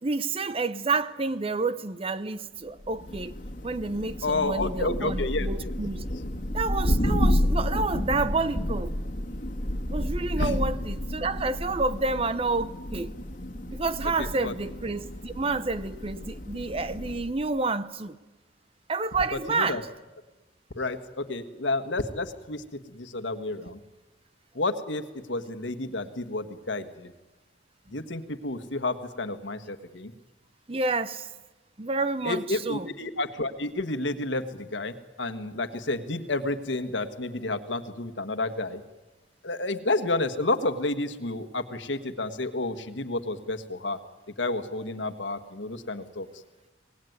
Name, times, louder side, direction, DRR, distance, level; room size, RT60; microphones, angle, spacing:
voice 1, 0.0-3.4 3.6-6.1 6.5-8.9 9.9-13.1 13.7-18.1 18.9-19.9 30.7-31.3 31.8-32.9, right 3 dB, 30° right, 0.7 m, -29 dB
Thunder, 2.8-17.4, left 1 dB, 45° left, 1.9 m, -30 dB
voice 2, 4.2-5.7 10.4-10.5 14.2-14.5 19.5-19.8 20.7-23.8 24.5-27.1 27.9-30.1 32.2-38.8 39.4-44.0 44.4-46.3, left 2 dB, 85° left, 1.5 m, -30 dB
25.5 x 19.0 x 9.5 m
head